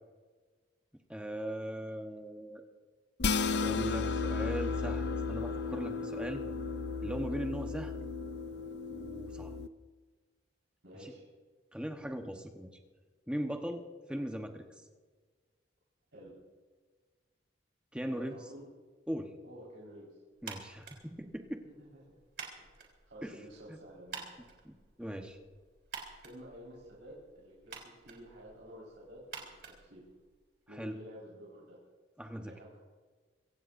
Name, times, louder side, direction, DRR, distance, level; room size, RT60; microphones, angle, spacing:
voice 1, 1.1-2.6 3.5-6.4 7.0-7.9 8.9-9.6 11.0-11.1 11.7-12.7 13.3-14.7 17.9-18.4 19.1-19.3 20.4-21.6 23.2-23.4 23.7-23.8 24.6-25.4 30.7-31.0 32.2-32.6, equal, 5° right, 4 dB, 1.1 m, -39 dB
sound 1, 3.2-9.7, left 4 dB, 60° left, 0.6 m, -34 dB
voice 2, 10.8-11.3 16.1-16.3 18.0-18.6 19.4-20.1 21.8-22.2 22.6-24.4 26.2-30.0 30.7-31.8 32.4-32.8, equal, 85° right, -6 dB, 4.7 m, -51 dB
sound 2, 20.4-30.6, right 5 dB, 60° right, 3.6 m, -50 dB
25.0 x 16.5 x 2.6 m, 1.4 s
head